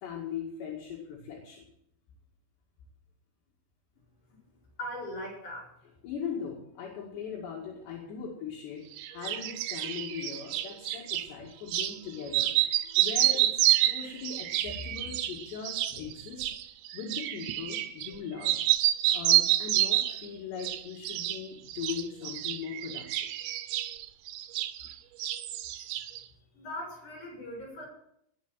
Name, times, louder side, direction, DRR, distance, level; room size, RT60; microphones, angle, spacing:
voice 1, 0.0-1.7 6.0-16.5 16.9-18.6 19.1-23.3, left 6 dB, 75° left, -2 dB, 4.3 m, -39 dB
voice 2, 4.8-5.7 26.5-27.9, left 1 dB, 45° left, 0 dB, 8.2 m, -39 dB
sound 1, 9.0-11.3 11.7-12.0 12.3-18.2 18.4-20.3 20.6-21.4 21.7-24.9 25.2-26.2, right 14 dB, 90° right, 3.1 m, -28 dB
18.5 x 7.6 x 7.5 m, 0.74 s
omnidirectional pair, 5.2 m